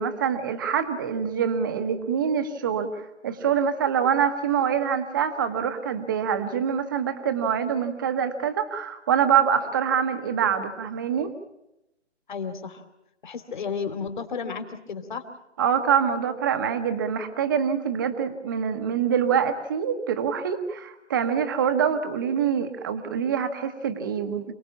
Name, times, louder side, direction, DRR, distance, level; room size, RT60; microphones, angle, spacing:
voice 1, 0.0-11.3 15.6-24.5, right 7 dB, 20° right, 8 dB, 1.3 m, -25 dB
voice 2, 12.3-12.8 13.2-15.2, left 5 dB, 45° left, 8 dB, 3.1 m, -32 dB
28.5 x 19.5 x 7.2 m, 0.89 s
hypercardioid pair, 165°, 35 cm